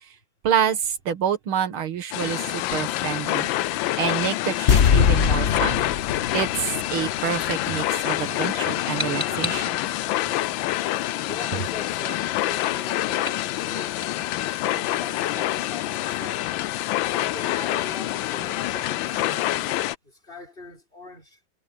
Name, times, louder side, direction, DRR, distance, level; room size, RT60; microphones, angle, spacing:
voice 1, 0.4-3.5 4.0-5.9 6.3-9.7, right 8 dB, 75° right, 2.4 m, -27 dB
sound 1, 2.1-20.0, left 15 dB, 75° left, 1.3 m, -26 dB
sound 2, 4.7-7.9 8.1-8.2, left 7 dB, 50° left, 0.8 m, -22 dB
sound 3, 7.6-17.5, left 2 dB, 15° right, 4.8 m, -41 dB
voice 2, 11.2-14.0 14.7-16.4 17.2-21.4, left 1 dB, 25° left, 6.3 m, -42 dB
omnidirectional pair, 2.3 m